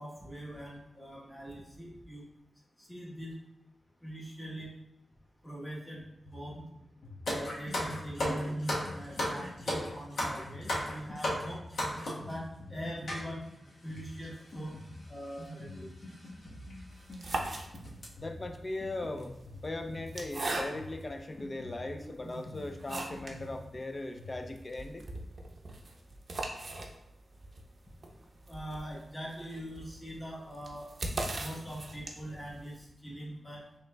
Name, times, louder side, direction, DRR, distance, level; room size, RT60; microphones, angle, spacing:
voice 1, 0.0-2.2 2.8-3.4 4.0-4.7 5.4-6.0 6.3-6.6 7.3-11.6 12.3-13.4 13.8-14.8 15.1-15.9 28.5-30.9 31.4-33.7, equal, 15° left, -4 dB, 1.1 m, -42 dB
Drum kit, 6.2-24.4, left 1 dB, 60° left, 1.1 m, -48 dB
sound 1, 7.3-12.3 13.1-13.2 14.0-14.1 14.2-14.4 15.4-15.6 16.1-16.2 16.7-16.8 17.2-17.5 17.8-18.0, left 1 dB, 80° left, 1.1 m, -34 dB
sound 2, 17.0-18.2 19.0-21.1 21.7-21.8 22.3-23.4 23.7-23.8 24.1-24.2 24.6-32.4, right 2 dB, 50° right, 0.6 m, -39 dB
voice 2, 18.2-19.3 19.6-25.1, left 2 dB, 30° left, 5 dB, 0.4 m, -39 dB
5.5 x 3.2 x 2.2 m, 0.85 s
wide cardioid pair, 100°, 0 cm